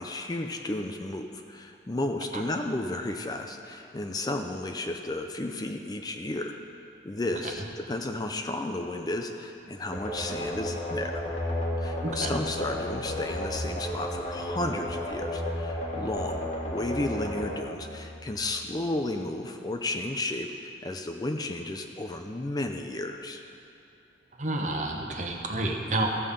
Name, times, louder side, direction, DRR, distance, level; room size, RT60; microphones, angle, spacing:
voice 1, 0.0-6.6 7.0-11.2 11.8-16.4 16.7-23.4, left 2 dB, 20° left, 4 dB, 0.4 m, -33 dB
sound 1, 9.9-18.6, left 1 dB, 40° left, 1.4 m, -33 dB
voice 2, 12.0-12.4 24.4-26.1, right 2 dB, 45° right, 1 dB, 1.1 m, -30 dB
14.5 x 5.5 x 6.7 m, 2.7 s
head